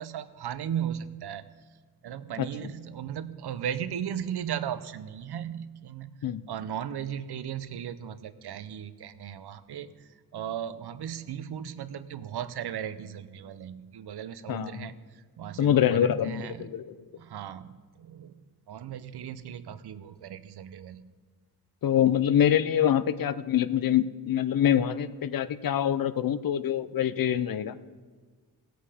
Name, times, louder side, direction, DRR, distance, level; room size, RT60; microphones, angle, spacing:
voice 1, 0.0-1.4 2.0-6.2 6.5-16.7 17.2-18.4 18.7-21.0, right 9 dB, 85° right, 14 dB, 0.7 m, -36 dB
voice 2, 14.5-14.9 15.6-16.9 21.8-27.8, left 10 dB, 60° left, 15 dB, 0.6 m, -25 dB
18.0 x 8.1 x 4.9 m, 1.5 s
wide cardioid pair, 155°, 38 cm